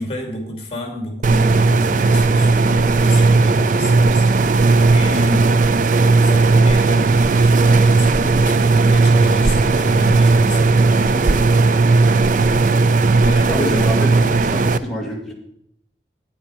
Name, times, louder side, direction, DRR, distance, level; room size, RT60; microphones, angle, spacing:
voice 1, 0.0-4.3 4.9-5.5 6.2-11.4 13.2-13.9, left 1 dB, 35° left, 3 dB, 2.3 m, -30 dB
sound 1, 1.2-14.8, right 3 dB, 45° right, 0.4 m, -15 dB
voice 2, 12.3-12.6 13.5-15.3, equal, ahead, -3 dB, 1.9 m, -28 dB
9.4 x 8.7 x 4.8 m, 0.73 s
head